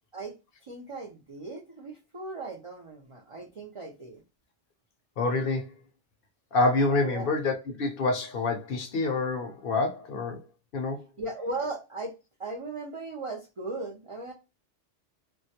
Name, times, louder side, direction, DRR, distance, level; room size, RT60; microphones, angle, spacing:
voice 1, 0.6-4.2 7.0-7.3 11.2-12.1 12.4-14.3, right 2 dB, 60° right, 0.3 m, -37 dB
voice 2, 5.2-5.7 6.5-10.4 10.7-11.1, left 3 dB, 60° left, 0.6 m, -27 dB
2.2 x 2.1 x 2.7 m
omnidirectional pair, 1.2 m